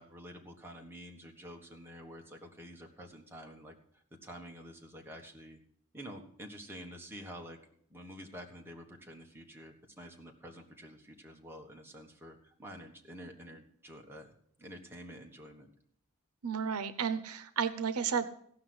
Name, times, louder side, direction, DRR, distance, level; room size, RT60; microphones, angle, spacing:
voice 1, 0.0-3.8 4.2-5.6 5.9-7.6 7.9-14.3 14.6-15.7, equal, 10° right, 1 dB, 1.5 m, -49 dB
voice 2, 16.4-18.3, right 6 dB, 90° right, 12 dB, 0.8 m, -32 dB
16.0 x 5.9 x 7.8 m, 0.65 s
head